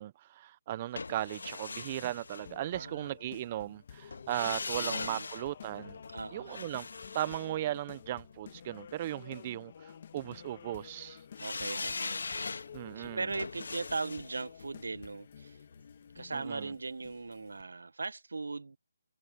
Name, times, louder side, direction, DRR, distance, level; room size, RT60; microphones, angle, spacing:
voice 1, 0.0-6.0 6.3-6.9 7.1-11.2 12.7-13.3 16.3-16.7, right 13 dB, 30° right, 0.5 m, -37 dB
sound 1, 1.0-3.1 4.1-8.4 11.4-16.4 16.7-16.8, left 4 dB, 75° left, 1.5 m, -41 dB
sound 2, 2.3-17.6, left 8 dB, 45° left, 2.0 m, -51 dB
voice 2, 2.7-3.2 4.7-5.3 6.1-6.7 11.4-12.6 13.0-15.6 16.1-18.8, right 3 dB, 75° right, 0.8 m, -39 dB
figure-of-eight pair, 160°, 0 cm